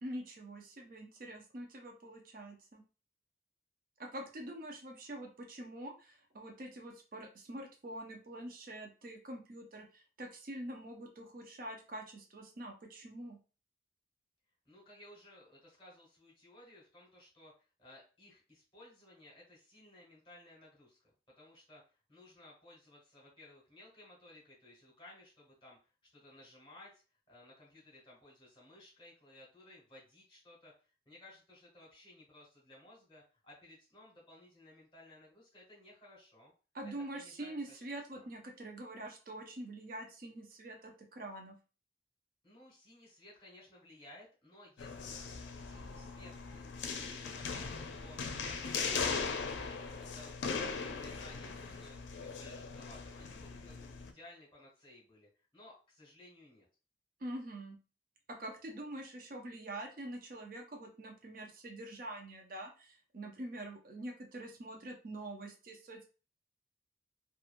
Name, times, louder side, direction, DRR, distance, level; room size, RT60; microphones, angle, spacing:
voice 1, 0.0-2.8 4.0-13.4 36.7-41.6 57.2-57.8 58.3-66.0, right 1 dB, 50° right, 2 dB, 0.5 m, -45 dB
voice 2, 14.6-21.0 21.4-25.8 26.1-27.0 27.3-36.5 37.1-37.9 38.1-38.3 42.4-56.7, left 1 dB, 30° left, -4 dB, 1.3 m, -58 dB
sound 1, 44.8-54.1, left 5 dB, 85° left, 0.4 m, -39 dB
2.9 x 2.4 x 2.4 m, 0.35 s
head